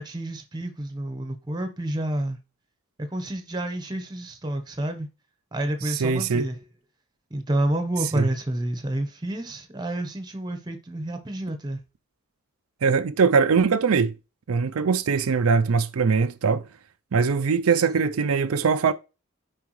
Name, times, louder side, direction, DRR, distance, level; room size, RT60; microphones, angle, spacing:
voice 1, 0.0-2.4 3.0-5.1 5.5-6.6 7.3-11.8, right 1 dB, 20° right, 1.0 m, -29 dB
voice 2, 5.9-6.5 8.1-8.3 12.8-14.1 14.5-16.6 17.1-18.9, right 5 dB, 80° right, 0.5 m, -21 dB
13.0 x 4.8 x 3.1 m
head